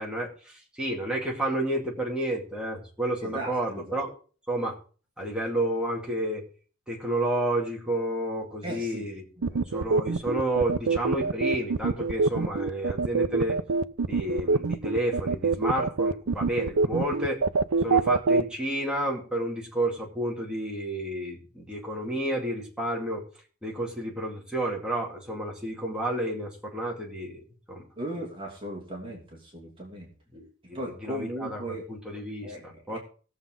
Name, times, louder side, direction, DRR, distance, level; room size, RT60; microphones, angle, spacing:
voice 1, 0.0-4.1 4.5-4.7 5.2-6.4 6.9-13.6 14.1-17.4 17.8-23.2 23.6-27.8 30.3-32.5 32.9-33.0, right 1 dB, 5° right, -3 dB, 2.5 m, -31 dB
voice 2, 3.2-4.0 8.6-9.1 9.4-10.0 28.0-30.1 30.7-31.8 32.4-33.0, right 1 dB, 25° right, -1 dB, 2.7 m, -37 dB
sound 1, 9.4-18.4, right 4 dB, 75° right, 0.6 m, -24 dB
18.5 x 7.1 x 3.8 m, 0.39 s
head